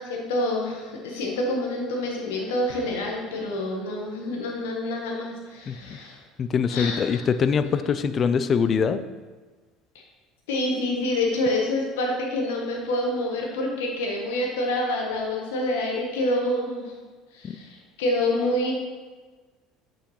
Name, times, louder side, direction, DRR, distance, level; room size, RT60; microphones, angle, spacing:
voice 1, 0.0-6.2 6.7-7.2 10.5-16.9 17.3-18.7, left 1 dB, 80° left, 0 dB, 1.2 m, -27 dB
voice 2, 5.7-6.0 6.4-9.0 17.4-17.6, left 6 dB, 40° left, 12 dB, 0.5 m, -23 dB
8.2 x 6.4 x 3.1 m, 1.3 s
hypercardioid pair, 70°, 0 cm